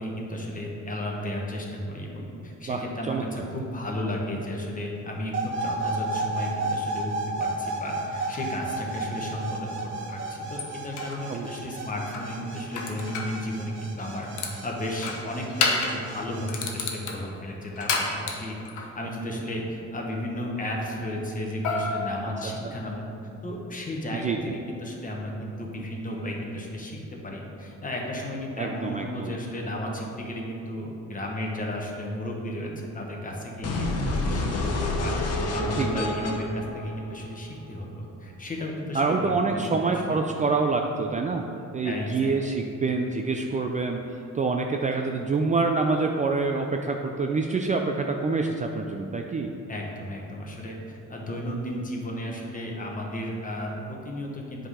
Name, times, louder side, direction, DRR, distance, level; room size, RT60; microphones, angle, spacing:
voice 1, 0.0-7.1 7.4-23.1 23.4-27.0 27.2-40.2 41.8-42.3 49.7-54.7, left 1 dB, 30° left, -1 dB, 1.2 m, -34 dB
voice 2, 2.7-3.2 11.3-11.5 22.6-22.7 24.1-24.5 28.6-29.3 35.8-36.1 38.9-41.4 41.7-49.5, right 4 dB, 25° right, 3 dB, 0.4 m, -26 dB
sound 1, 5.3-16.5, right 2 dB, 45° right, 0.9 m, -33 dB
sound 2, 8.2-8.5 10.1-10.2 10.6-11.2 12.1-13.4 14.0-14.6 15.0-16.0 16.5-18.9 21.6-22.9, left 4 dB, 90° left, 0.9 m, -30 dB
sound 3, 33.6-37.6, left 2 dB, 55° left, 1.0 m, -28 dB
7.8 x 3.8 x 4.9 m, 2.7 s
cardioid pair, 105°, 29 cm